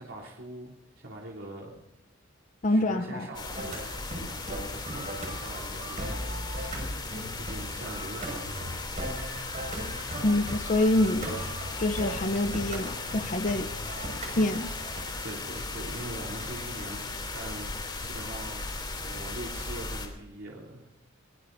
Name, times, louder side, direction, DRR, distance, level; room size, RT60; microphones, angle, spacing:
voice 1, 0.0-1.8 2.6-8.9 15.2-18.7 19.0-21.0, right 1 dB, 90° right, -5 dB, 3.4 m, -43 dB
voice 2, 2.6-3.3 10.2-11.4 11.8-13.7 14.4-14.7, left 1 dB, 40° left, 9 dB, 0.7 m, -26 dB
sound 1, 3.3-20.1, left 3 dB, 25° left, 2.9 m, -37 dB
sound 2, 3.6-15.0, right 1 dB, 40° right, 5.6 m, -38 dB
22.5 x 20.0 x 2.7 m, 0.94 s
head